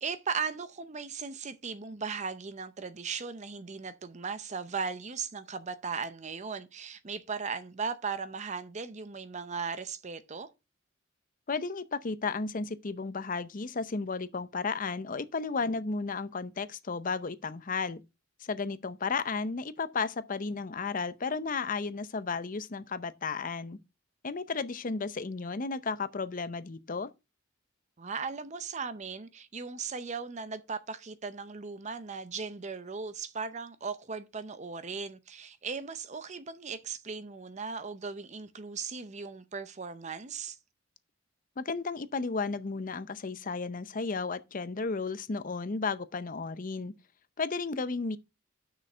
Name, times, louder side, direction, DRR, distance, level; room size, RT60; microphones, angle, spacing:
voice 1, 0.0-10.5 28.0-40.6, right 5 dB, 35° right, 0.7 m, -37 dB
voice 2, 11.5-18.0 18.4-23.8 24.2-27.1 41.6-46.9 47.4-48.2, left 4 dB, 40° left, 0.6 m, -33 dB
6.4 x 6.3 x 5.5 m
head